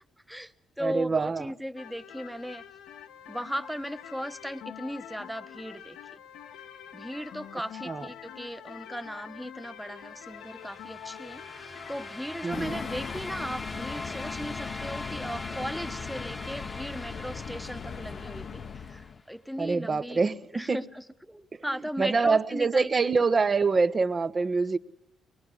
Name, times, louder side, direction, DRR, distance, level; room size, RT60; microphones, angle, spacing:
voice 1, 0.3-2.6 3.3-6.2 6.9-20.2 20.5-23.1, equal, 5° right, 1.2 m, -37 dB
voice 2, 0.8-1.5 7.9-8.1 12.4-12.8 19.6-20.8 21.5-21.7 22.0-24.8, right 4 dB, 35° right, 1.1 m, -25 dB
sound 1, 1.8-13.2, left 9 dB, 85° left, 1.3 m, -46 dB
sound 2, 10.2-19.1, left 2 dB, 20° left, 1.2 m, -41 dB
sound 3, 12.5-19.2, left 6 dB, 55° left, 0.9 m, -39 dB
23.5 x 20.5 x 9.8 m
cardioid pair, 90°, 0 cm